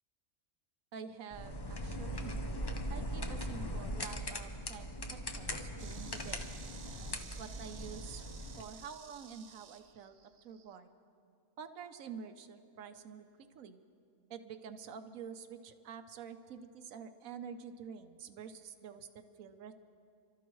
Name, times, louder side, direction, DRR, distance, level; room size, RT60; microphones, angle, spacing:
voice 1, 0.9-2.4 2.9-6.4 7.4-8.2 8.6-10.2 10.4-10.9 11.6-13.8 14.3-19.7, right 7 dB, 70° right, 9 dB, 1.1 m, -48 dB
sound 1, 1.3-8.6, equal, 30° left, 0.5 m, -40 dB
Insect, 5.8-10.8, right 7 dB, 55° right, 0.6 m, -54 dB
28.0 x 13.0 x 3.1 m, 2.4 s
omnidirectional pair, 1.5 m